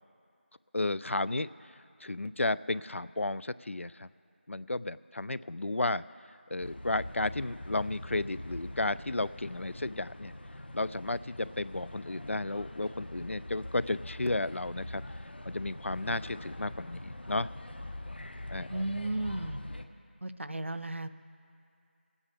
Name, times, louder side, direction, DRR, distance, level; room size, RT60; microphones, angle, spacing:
voice 1, 0.7-1.5 2.0-4.1 4.5-6.0 6.5-10.3 10.7-15.0 15.4-17.5 18.5-18.8, left 2 dB, 90° left, 17 dB, 0.4 m, -33 dB
sound 1, 6.6-19.8, left 1 dB, 55° left, 0.8 m, -43 dB
voice 2, 18.7-19.6 20.2-21.1, right 2 dB, 75° right, 11 dB, 0.6 m, -34 dB
25.0 x 9.7 x 3.4 m, 2.5 s
figure-of-eight pair, 175°, 7 cm